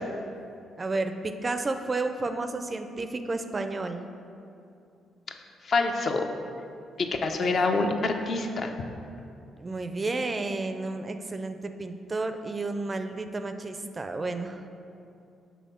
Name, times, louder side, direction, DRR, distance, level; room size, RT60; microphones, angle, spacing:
voice 1, 0.8-4.0 7.4-7.5 9.6-14.6, right 3 dB, 30° right, 8 dB, 0.4 m, -31 dB
voice 2, 5.7-6.3 7.0-8.7, left 3 dB, 50° left, 4 dB, 0.5 m, -26 dB
6.3 x 3.4 x 5.8 m, 2.6 s
cardioid pair, 90°, 0 cm